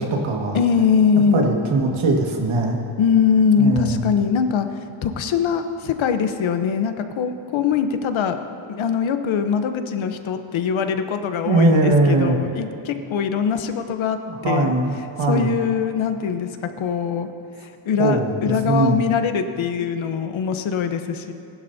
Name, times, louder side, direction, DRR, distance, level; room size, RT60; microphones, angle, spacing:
voice 1, 0.0-0.6 1.3-2.8 3.6-4.2 11.5-12.4 14.4-15.6 18.0-19.0, right 2 dB, 75° right, 0 dB, 1.9 m, -20 dB
voice 2, 0.5-1.5 3.0-4.7 5.0-14.7 15.3-16.5 16.8-17.3 17.6-21.3, left 6 dB, 70° left, 8 dB, 1.0 m, -22 dB
20.0 x 11.5 x 2.8 m, 2.9 s
cardioid pair, 110°, 49 cm